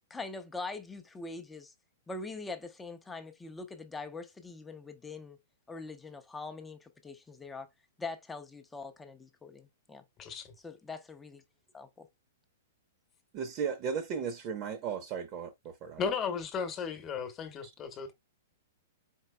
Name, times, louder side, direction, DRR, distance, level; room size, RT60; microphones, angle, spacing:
voice 1, 0.1-1.7 2.1-5.4 5.7-7.7 8.0-10.0 10.6-11.4 11.7-12.1, left 3 dB, 10° left, 0.7 m, -43 dB
voice 2, 10.2-10.5 16.0-18.1, left 6 dB, 25° left, 1.1 m, -35 dB
voice 3, 13.3-16.0, right 6 dB, 40° right, 0.9 m, -35 dB
4.5 x 3.9 x 2.2 m
hypercardioid pair, 130°, 0 cm